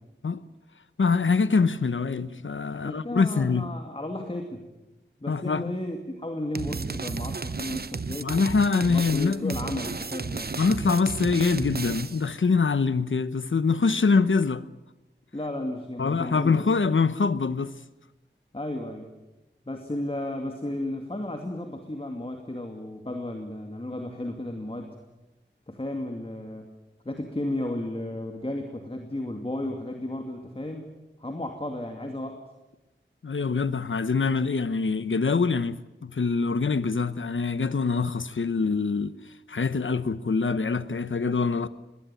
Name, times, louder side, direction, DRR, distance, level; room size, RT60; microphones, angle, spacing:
voice 1, 1.0-3.7 5.3-5.7 8.2-9.6 10.6-14.6 16.0-17.7 33.2-39.1 39.5-41.7, left 4 dB, 90° left, 1.0 m, -24 dB
voice 2, 2.7-4.6 5.2-8.4 8.8-10.5 15.3-16.7 18.5-19.1 19.7-25.0 25.7-26.7 27.0-30.9 31.2-32.4, left 1 dB, 30° left, 2.5 m, -34 dB
sound 1, 6.5-12.3, right 4 dB, 55° right, 0.9 m, -33 dB
21.5 x 18.5 x 9.2 m
wide cardioid pair, 60°, 19 cm